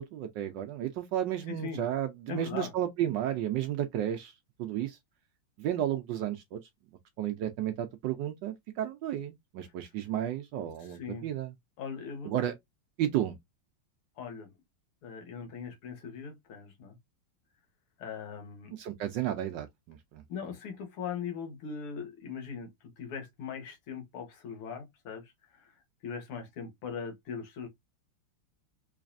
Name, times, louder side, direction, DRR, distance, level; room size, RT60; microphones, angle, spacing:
voice 1, 0.0-4.3 4.6-5.0 5.6-6.6 7.2-11.5 12.2-12.5 13.0-13.4 18.8-20.2, right 11 dB, 75° right, 1.1 m, -32 dB
voice 2, 1.5-1.8 2.3-2.7 10.8-11.3 11.8-12.3 14.2-14.5 15.0-17.0 18.0-18.7 20.3-22.7 23.0-25.7 26.0-27.7, left 6 dB, 85° left, 2.2 m, -40 dB
4.0 x 3.2 x 2.5 m
omnidirectional pair, 2.4 m